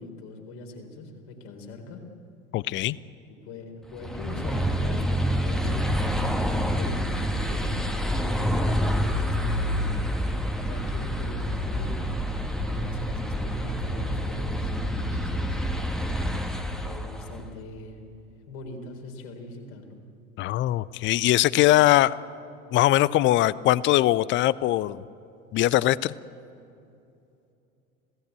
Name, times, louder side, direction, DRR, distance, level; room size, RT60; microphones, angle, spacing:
voice 1, 0.0-2.0 3.3-9.8 10.6-12.1 12.7-15.7 16.8-18.0 18.5-20.0, left 2 dB, 55° left, 3 dB, 4.1 m, -41 dB
voice 2, 2.5-3.0 20.4-22.1 22.7-25.0 25.5-26.1, left 15 dB, 25° left, 21 dB, 0.5 m, -21 dB
sound 1, 3.9-17.4, equal, ahead, 1.5 m, -27 dB
27.0 x 17.5 x 8.2 m, 2.7 s
figure-of-eight pair, 75°, 44 cm